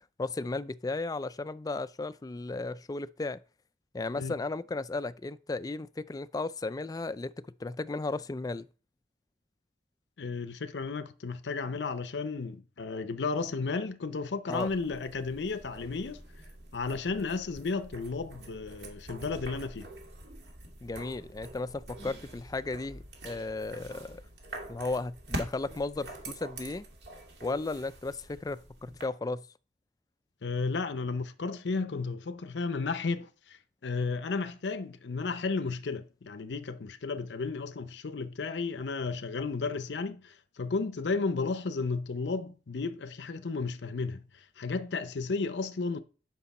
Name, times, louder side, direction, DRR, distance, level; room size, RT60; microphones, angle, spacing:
voice 1, 0.2-3.4 3.9-8.7 14.5-14.7 20.8-24.2 24.7-26.8 27.4-29.4, left 3 dB, 20° left, 0.4 m, -35 dB
voice 2, 10.2-16.2 16.7-19.9 30.4-33.6 33.8-46.0, left 4 dB, 85° left, 0.6 m, -33 dB
sound 1, 14.5-29.1, right 1 dB, 70° right, 2.3 m, -45 dB
9.4 x 6.1 x 4.2 m
head